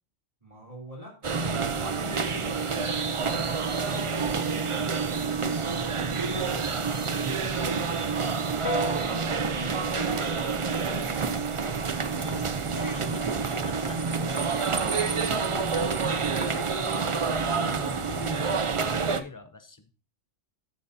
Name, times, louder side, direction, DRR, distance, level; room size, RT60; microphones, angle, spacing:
voice 1, 0.4-4.9 5.4-7.6, right 1 dB, 25° right, 3.5 m, -45 dB
sound 1, 1.2-19.2, right 5 dB, 40° right, 0.4 m, -28 dB
Piano, 8.6-18.4, left 1 dB, 75° left, 2.3 m, -42 dB
voice 2, 12.1-20.0, left 3 dB, 20° left, 0.5 m, -43 dB
13.0 x 8.2 x 2.7 m
omnidirectional pair, 1.3 m